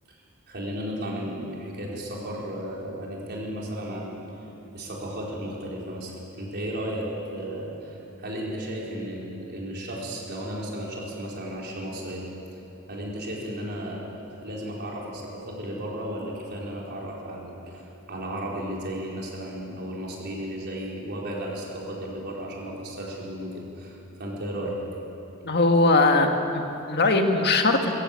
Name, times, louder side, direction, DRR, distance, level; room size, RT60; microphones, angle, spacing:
voice 1, 0.1-4.3 4.7-12.6 12.9-24.8, equal, 50° right, -3 dB, 4.6 m, -34 dB
voice 2, 25.4-27.9, left 2 dB, 50° left, 4 dB, 1.8 m, -21 dB
22.5 x 14.0 x 8.7 m, 3.0 s
head